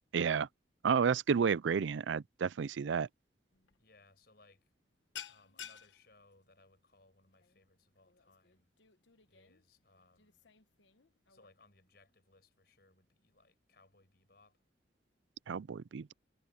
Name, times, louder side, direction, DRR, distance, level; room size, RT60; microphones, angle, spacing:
voice 1, 0.1-0.5 0.8-3.1 15.5-16.1, right 6 dB, 85° right, 0.4 m, -31 dB
sound 1, 3.5-3.8 4.1-4.4 4.6-11.5, left 9 dB, 85° left, 1.1 m, -53 dB
voice 2, 3.8-4.7 5.3-8.7 9.3-10.5 11.3-14.6, left 3 dB, 55° left, 6.0 m, -66 dB
head